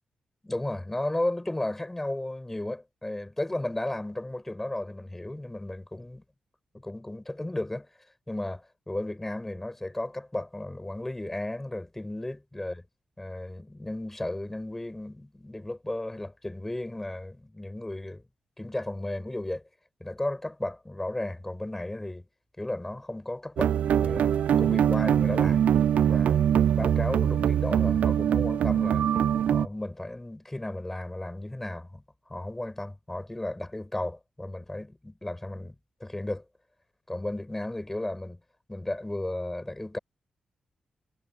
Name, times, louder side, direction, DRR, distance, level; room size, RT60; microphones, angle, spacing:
voice 1, 0.4-6.2 6.7-7.9 8.3-12.8 13.2-18.2 18.6-19.6 20.0-22.2 22.6-25.6 26.0-26.4 26.8-29.1 29.5-32.0 32.3-35.7 36.0-36.4 37.1-38.4 38.7-40.0, left 1 dB, 10° left, 6.7 m, -34 dB
sound 1, 23.6-29.7, right 9 dB, 75° right, 0.3 m, -23 dB
wide cardioid pair, 145°, 2 cm